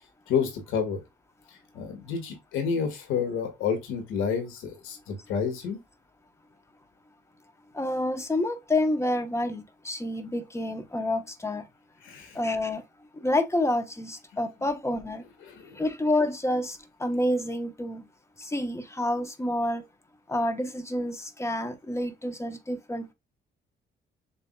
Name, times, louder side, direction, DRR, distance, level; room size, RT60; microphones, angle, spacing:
voice 1, 0.3-1.0 1.7-5.8 12.0-12.4 15.5-15.8, left 6 dB, 90° left, 1.6 m, -29 dB
voice 2, 7.7-11.6 12.3-12.8 13.2-15.2 15.7-18.0 18.4-19.8 20.3-23.1, left 1 dB, 15° left, 0.9 m, -28 dB
6.9 x 2.7 x 2.2 m
cardioid pair, 90°, 20 cm